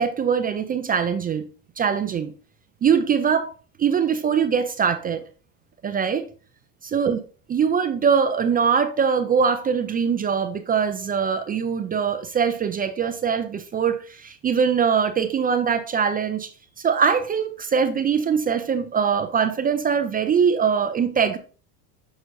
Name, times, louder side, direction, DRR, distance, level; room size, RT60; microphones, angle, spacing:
voice 1, 0.0-1.4 1.8-2.3 2.8-3.5 3.8-5.2 5.8-6.3 6.9-7.2 7.5-16.5 16.8-21.4, right 6 dB, 20° right, 0.4 m, -22 dB
6.3 x 6.0 x 2.6 m
supercardioid pair, 105°, 47 cm